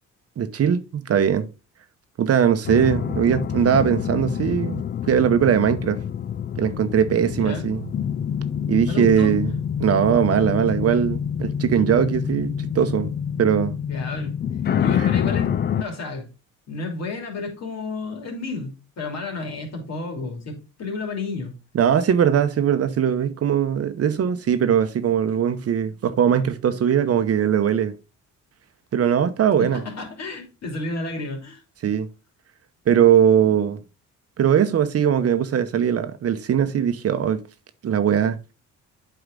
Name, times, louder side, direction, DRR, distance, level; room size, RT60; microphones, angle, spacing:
voice 1, 0.4-1.5 2.2-6.0 6.6-7.8 8.7-9.5 9.8-13.1 13.4-13.8 15.0-15.1 21.7-27.9 28.9-29.8 31.8-32.1 32.9-33.8 34.4-37.4 37.8-38.4, right 8 dB, 55° right, 0.9 m, -20 dB
sound 1, 2.6-15.8, left 8 dB, 35° left, 0.4 m, -27 dB
voice 2, 7.3-7.6 8.9-9.3 13.9-14.4 14.8-15.5 15.8-16.3 16.7-21.5 29.6-31.6, left 3 dB, 60° left, 3.1 m, -31 dB
8.2 x 4.9 x 3.8 m
cardioid pair, 90°, 30 cm